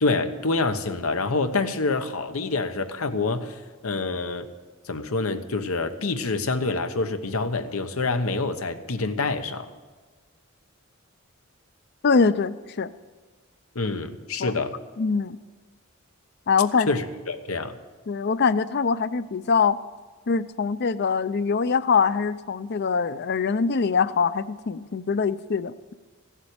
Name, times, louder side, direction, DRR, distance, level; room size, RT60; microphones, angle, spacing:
voice 1, 0.0-4.5 4.9-9.7 13.7-14.8 16.9-17.8, left 3 dB, 85° left, 8 dB, 1.1 m, -27 dB
voice 2, 12.0-12.9 14.4-14.5 15.0-15.4 16.5-16.9 18.1-19.8 20.3-25.9, left 5 dB, 50° left, 15 dB, 0.5 m, -23 dB
16.0 x 7.4 x 9.9 m, 1.4 s
head